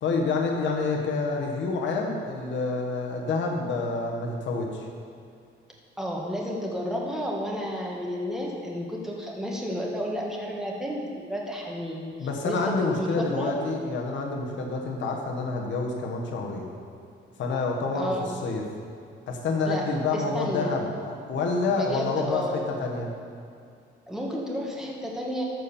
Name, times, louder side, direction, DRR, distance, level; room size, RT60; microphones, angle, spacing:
voice 1, 0.0-4.9 12.2-16.7 17.4-18.1 18.4-18.6 19.3-22.4 22.8-23.1, left 3 dB, 65° left, 0 dB, 1.4 m, -28 dB
voice 2, 6.0-13.5 17.9-18.3 19.7-20.7 21.7-22.7 24.1-25.4, equal, ahead, -3 dB, 1.7 m, -32 dB
12.5 x 4.4 x 7.1 m, 2.4 s
cardioid pair, 115°, 21 cm